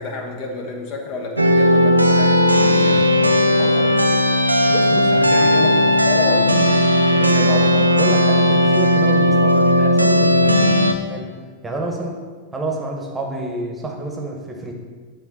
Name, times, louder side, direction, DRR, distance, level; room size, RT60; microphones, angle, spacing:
voice 1, 0.0-4.3 5.1-7.9, left 3 dB, 45° left, 2 dB, 1.1 m, -30 dB
sound 1, 1.4-10.9, equal, 85° right, 0.5 m, -15 dB
voice 2, 4.7-5.4 7.1-7.4 7.9-11.3 11.6-12.2 12.5-14.7, right 1 dB, 10° right, 1 dB, 1.2 m, -29 dB
9.8 x 3.9 x 4.2 m, 1.5 s
figure-of-eight pair, 90°, 0 cm